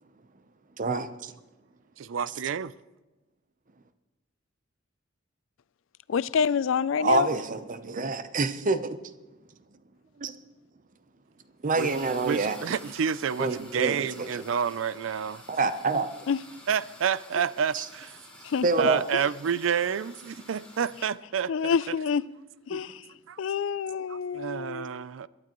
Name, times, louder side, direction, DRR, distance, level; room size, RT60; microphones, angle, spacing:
voice 1, 0.8-1.3 7.0-9.0 10.2-10.3 11.6-12.6 13.4-14.1 15.5-16.1 17.7-17.8 18.6-19.0 22.7-22.8, right 3 dB, 45° right, 0.8 m, -27 dB
voice 2, 2.0-2.7 11.7-11.9 12.2-15.4 16.7-18.2 18.8-22.0 23.3-23.4 24.1-25.3, right 7 dB, 80° right, 0.4 m, -29 dB
voice 3, 6.1-7.3 16.3-16.4 18.4-18.7 19.1-19.2 21.5-22.2 22.7-23.0 23.4-24.9, left 6 dB, 80° left, 0.4 m, -27 dB
sound 1, 11.7-21.1, left 1 dB, 5° left, 3.0 m, -49 dB
22.5 x 12.0 x 3.1 m
head